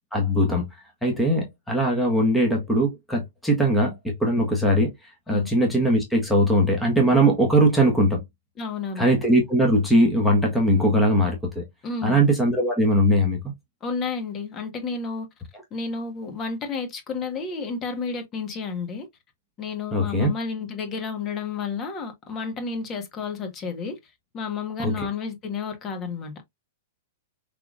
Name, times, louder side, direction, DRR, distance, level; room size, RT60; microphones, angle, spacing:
voice 1, 0.1-0.7 1.0-4.9 5.3-8.2 9.0-11.6 12.0-13.4 19.9-20.3 24.8-25.1, right 1 dB, 5° left, 1.4 m, -20 dB
voice 2, 8.6-9.1 11.8-12.2 13.8-15.3 15.7-19.1 19.6-24.0 24.3-26.4, left 5 dB, 30° left, 1.5 m, -31 dB
5.6 x 3.5 x 2.5 m
hypercardioid pair, 115°, 0 cm